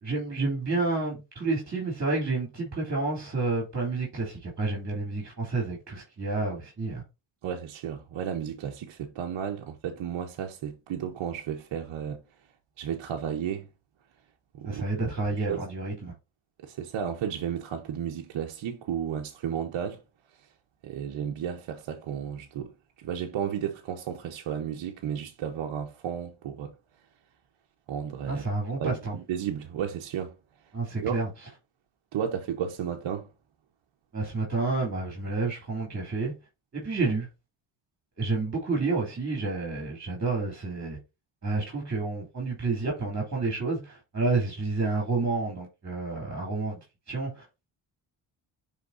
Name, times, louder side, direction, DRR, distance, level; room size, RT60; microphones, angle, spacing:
voice 1, 0.0-7.0 14.6-16.1 28.3-29.1 30.7-31.3 34.1-36.3 36.7-37.3 38.2-41.0 41.4-46.8 47.1-47.4, right 3 dB, 35° right, 3.0 m, -29 dB
voice 2, 7.4-12.2 12.8-13.7 14.5-14.8 15.3-15.6 16.6-20.0 20.8-22.7 23.0-26.7 27.9-28.4 28.8-30.3 31.0-31.2 32.1-33.3, right 8 dB, 65° right, 1.1 m, -33 dB
10.5 x 3.7 x 2.6 m
cardioid pair, 75°, 47 cm